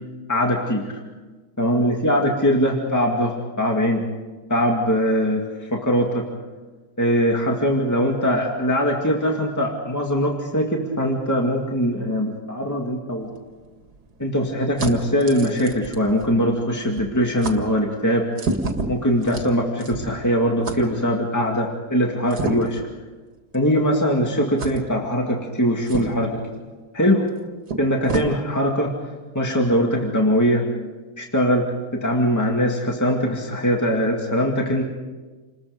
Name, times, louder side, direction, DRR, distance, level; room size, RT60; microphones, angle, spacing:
voice 1, 0.3-0.9 1.6-4.0 4.5-6.3 7.0-13.3 14.2-18.3 18.9-22.8 23.5-26.4 26.9-27.3 27.8-28.9 29.3-30.7 31.2-31.7 31.9-34.8, equal, 10° left, 0 dB, 2.2 m, -21 dB
sound 1, 13.2-16.7 17.0-17.1 17.4-17.6 18.3-20.2 20.6-20.8 22.3-22.8 23.5-23.7 24.6-24.8 25.8-26.3 27.3-27.4 27.7-28.3, right 3 dB, 90° right, 2.4 m, -30 dB
28.5 x 21.0 x 5.3 m, 1.3 s
omnidirectional pair, 1.6 m